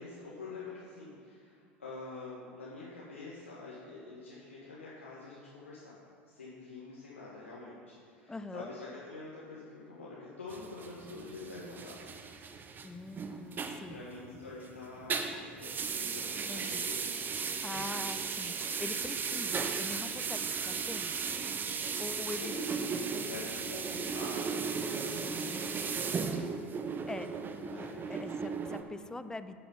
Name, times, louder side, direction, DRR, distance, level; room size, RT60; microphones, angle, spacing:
voice 1, 0.0-5.9 6.3-12.1 13.9-17.3 19.3-19.4 22.1-25.4 27.3-28.1, left 3 dB, 85° left, -7 dB, 1.5 m, -46 dB
voice 2, 8.3-8.7 12.8-14.0 16.5-16.8 17.6-21.1 22.0-22.6 26.0-26.4 27.1-27.3 28.1-29.5, left 2 dB, 10° left, 12 dB, 0.5 m, -43 dB
sound 1, 10.5-14.7 15.0-28.8, right 5 dB, 30° right, 0.9 m, -36 dB
9.5 x 6.8 x 5.5 m, 2.4 s
figure-of-eight pair, 75°, 7 cm